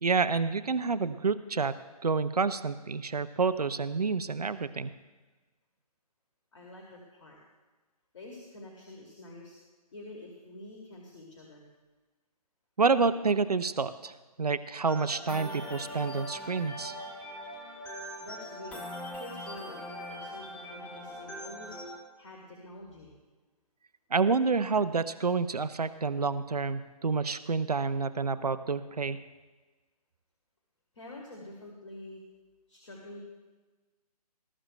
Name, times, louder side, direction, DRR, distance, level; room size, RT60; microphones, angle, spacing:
voice 1, 0.0-4.9 12.8-17.0 24.1-29.2, right 4 dB, 75° right, 14 dB, 0.6 m, -28 dB
voice 2, 6.5-7.4 8.1-9.6 9.9-11.7 18.2-21.8 22.2-23.1 30.9-32.2 32.7-33.2, left 2 dB, 50° left, -1 dB, 2.3 m, -47 dB
sound 1, 14.9-22.0, equal, 5° left, 0.9 m, -41 dB
20.0 x 12.5 x 2.2 m, 1.2 s
figure-of-eight pair, 135°, 20 cm